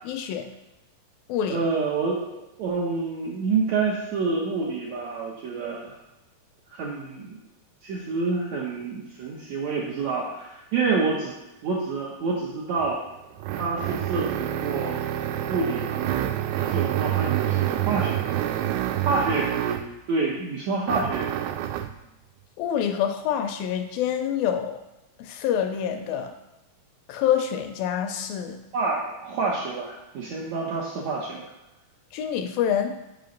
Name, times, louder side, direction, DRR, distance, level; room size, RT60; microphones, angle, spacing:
voice 1, 0.1-0.5 1.3-1.6 22.6-24.8 25.2-26.3 27.1-28.6 32.1-32.9, left 9 dB, 80° left, 6 dB, 2.3 m, -26 dB
voice 2, 1.5-6.0 6.7-7.4 7.8-11.4 11.6-13.0 13.5-15.0 15.5-18.5 19.0-19.8 20.1-21.5 28.7-31.5, right 4 dB, 70° right, -3 dB, 1.7 m, -28 dB
sound 1, 12.8-20.0 20.9-22.0, right 12 dB, 90° right, 2.4 m, -27 dB
5.8 x 5.4 x 5.2 m, 0.98 s
omnidirectional pair, 4.2 m